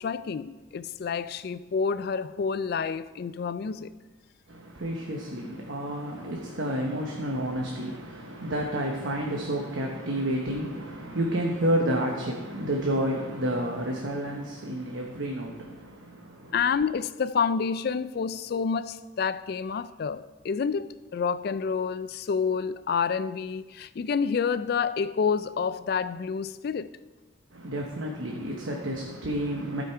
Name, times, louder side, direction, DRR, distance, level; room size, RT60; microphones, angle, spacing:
voice 1, 0.0-3.9 16.5-27.0, left 6 dB, 50° left, 0.3 m, -28 dB
voice 2, 4.5-16.5 27.5-29.8, right 1 dB, 70° right, 1.1 m, -30 dB
15.0 x 5.1 x 4.5 m
head